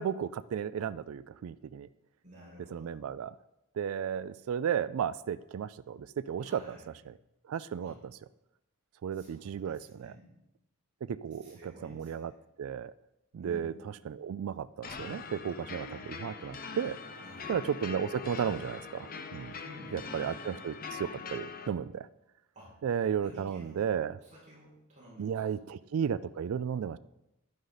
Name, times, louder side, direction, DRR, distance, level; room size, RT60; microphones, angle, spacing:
voice 1, 0.0-1.9 2.7-3.3 3.8-6.8 7.5-7.9 9.0-10.2 11.1-12.3 12.6-12.9 13.3-13.7 14.1-17.0 17.5-19.5 19.9-22.1 22.8-24.2 25.2-27.0, right 8 dB, 65° right, 15 dB, 0.3 m, -34 dB
voice 2, 2.2-2.9 6.4-6.9 7.8-8.0 9.1-10.3 11.4-12.3 13.4-13.8 17.1-17.6 19.6-20.1 22.5-22.7 23.2-23.9 24.2-25.6, right 1 dB, 35° right, -6 dB, 4.9 m, -52 dB
sound 1, 14.8-21.7, left 5 dB, 40° left, 0.7 m, -42 dB
11.5 x 10.5 x 4.0 m, 0.90 s
head